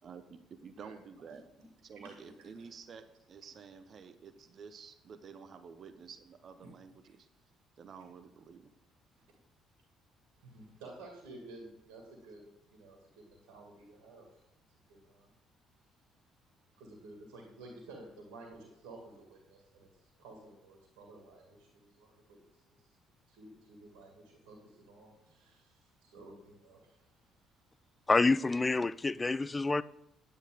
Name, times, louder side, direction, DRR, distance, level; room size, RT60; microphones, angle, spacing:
voice 1, 0.0-1.5 1.8-7.3 7.8-8.7, right 6 dB, 45° right, 0.9 m, -50 dB
voice 2, 1.9-2.6 6.6-6.7 9.2-9.3 10.3-12.4 12.7-14.3 14.9-15.3 16.7-22.4 22.7-22.9 23.3-27.1, right 2 dB, 65° right, 2.2 m, -53 dB
voice 3, 28.1-29.8, left 3 dB, 25° left, 0.4 m, -27 dB
9.9 x 9.8 x 3.7 m
figure-of-eight pair, 45°, 0 cm